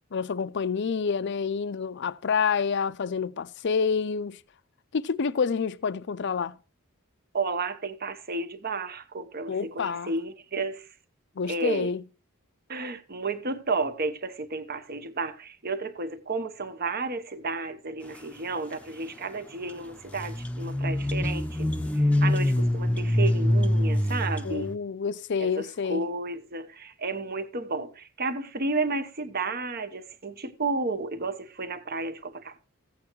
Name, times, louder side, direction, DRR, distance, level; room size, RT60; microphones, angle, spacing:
voice 1, 0.1-4.4 4.9-6.6 9.5-10.1 11.4-12.0 24.4-26.0, left 6 dB, 55° left, 0.5 m, -28 dB
voice 2, 7.3-10.9 11.5-11.9 12.7-24.8 25.4-32.6, right 3 dB, 45° right, 1.0 m, -32 dB
sound 1, 19.7-19.8 20.1-24.8, left 1 dB, 5° left, 0.7 m, -25 dB
15.0 x 8.5 x 3.1 m
head